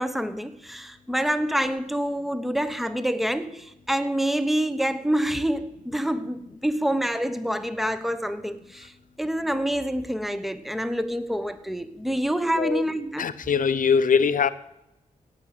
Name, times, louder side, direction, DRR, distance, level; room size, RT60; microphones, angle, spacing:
voice 1, 0.0-8.9 9.2-13.3, equal, ahead, 1.0 m, -27 dB
voice 2, 13.2-14.5, left 6 dB, 70° left, 0.8 m, -22 dB
17.0 x 6.2 x 9.0 m
wide cardioid pair, 90°, 15 cm